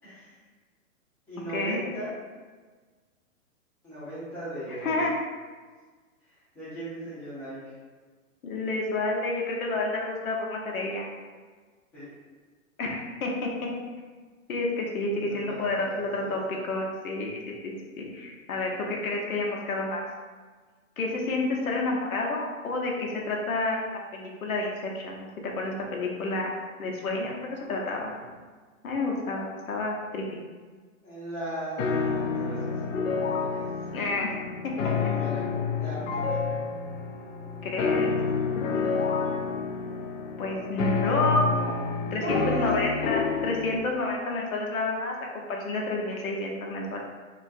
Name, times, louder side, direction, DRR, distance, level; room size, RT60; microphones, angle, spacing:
voice 1, 0.0-0.3 1.3-2.1 3.8-5.1 6.3-7.7 11.9-12.1 15.1-16.4 28.1-28.2 31.0-33.7 34.8-35.5 35.8-36.5 38.7-38.8 42.2-42.8, equal, 5° left, -13 dB, 0.6 m, -37 dB
voice 2, 1.5-1.8 4.7-5.1 8.4-11.1 12.8-13.7 14.5-20.0 21.0-25.3 25.6-26.5 26.8-28.1 28.8-30.2 33.9-34.3 34.6-34.7 37.6-38.1 40.4-47.0, left 2 dB, 90° left, -1 dB, 0.8 m, -30 dB
sound 1, 31.8-43.8, left 5 dB, 65° left, 0.5 m, -29 dB
3.0 x 2.3 x 2.6 m, 1.4 s
hypercardioid pair, 155°, 41 cm